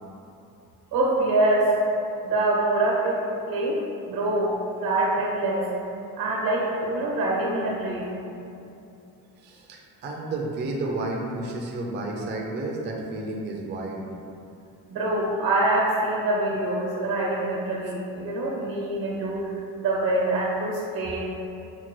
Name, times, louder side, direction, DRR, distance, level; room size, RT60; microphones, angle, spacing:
voice 1, 0.9-1.7 2.2-3.8 4.1-4.5 4.8-5.7 6.2-8.2 14.9-19.4 19.8-21.2, right 2 dB, 80° right, -3 dB, 1.1 m, -25 dB
voice 2, 9.4-14.1, right 2 dB, 30° right, -2 dB, 0.4 m, -31 dB
5.8 x 2.2 x 3.0 m, 2.7 s
cardioid pair, 145°, 36 cm